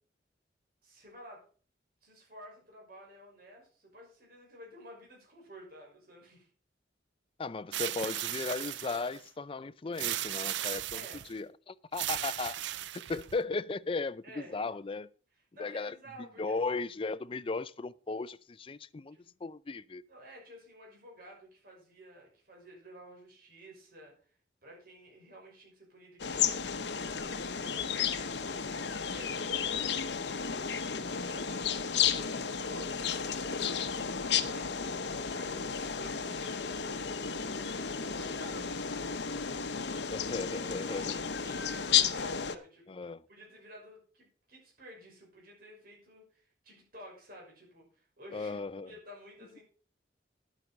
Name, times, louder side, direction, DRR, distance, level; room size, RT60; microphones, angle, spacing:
voice 1, 0.8-1.4 2.0-6.5 10.9-11.3 14.2-14.6 15.5-16.8 19.1-19.3 20.1-32.1 32.4-37.1 38.1-39.5 40.6-43.0 43.3-49.6, equal, 55° right, 6.0 m, -53 dB
voice 2, 7.4-11.0 11.3-12.6 12.9-15.1 15.6-20.0 40.1-41.6 42.9-43.2 48.3-48.9, left 3 dB, 30° left, 0.4 m, -36 dB
sound 1, 7.7-9.2 10.0-11.3 11.9-13.4, right 13 dB, 75° right, 0.5 m, -36 dB
sound 2, 26.2-42.5, left 7 dB, 70° left, 0.9 m, -33 dB
11.0 x 9.0 x 5.2 m
head